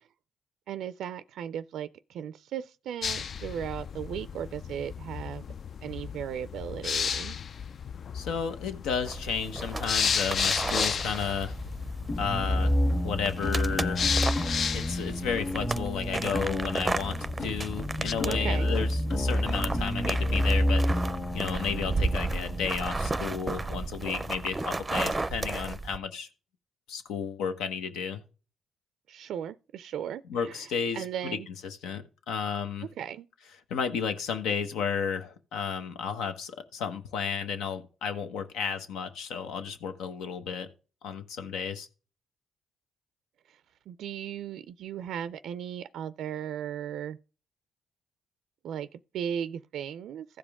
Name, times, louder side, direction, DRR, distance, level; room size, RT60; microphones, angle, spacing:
voice 1, 0.7-5.5 5.8-7.4 18.2-18.7 29.1-31.5 33.0-33.3 43.5-43.6 43.9-47.2 48.6-50.3, right 9 dB, 75° right, 0.4 m, -36 dB
sound 1, 3.0-18.1, left 6 dB, 55° left, 0.3 m, -34 dB
voice 2, 8.1-11.5 12.2-12.7 13.0-14.2 14.7-21.0 21.3-26.3 26.9-28.2 30.3-31.4 31.6-32.9 33.7-40.7 41.0-41.9, left 6 dB, 90° left, 1.1 m, -33 dB
sound 2, 9.1-26.0, right 3 dB, 20° right, 0.5 m, -34 dB
sound 3, 12.1-24.9, left 1 dB, 30° left, 1.6 m, -30 dB
15.5 x 5.1 x 3.6 m
cardioid pair, 90°, 0 cm